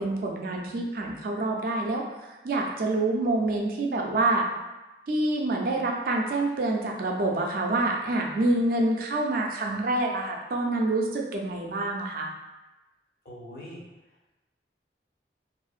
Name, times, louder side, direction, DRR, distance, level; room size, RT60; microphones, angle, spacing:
voice 1, 0.0-4.5 5.1-12.3, right 2 dB, 50° right, 0 dB, 0.3 m, -27 dB
voice 2, 13.2-13.8 14.1-14.3, equal, 50° left, -5 dB, 0.6 m, -43 dB
2.4 x 2.1 x 2.4 m, 1.1 s
head